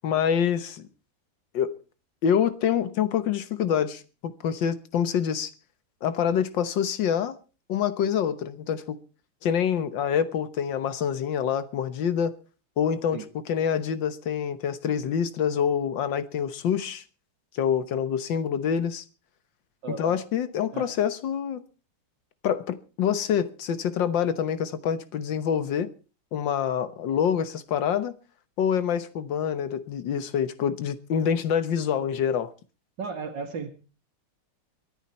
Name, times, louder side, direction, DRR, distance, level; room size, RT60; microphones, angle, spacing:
voice 1, 0.0-0.8 1.5-1.8 2.2-5.5 6.0-7.3 7.7-9.0 9.4-12.3 12.8-17.0 17.5-19.0 20.0-21.6 22.4-25.9 26.3-28.2 28.6-32.5, left 8 dB, 75° left, 1.8 m, -26 dB
voice 2, 19.8-20.2 20.7-20.9 33.0-33.7, right 5 dB, 75° right, 2.3 m, -34 dB
23.0 x 10.0 x 4.3 m
omnidirectional pair, 2.0 m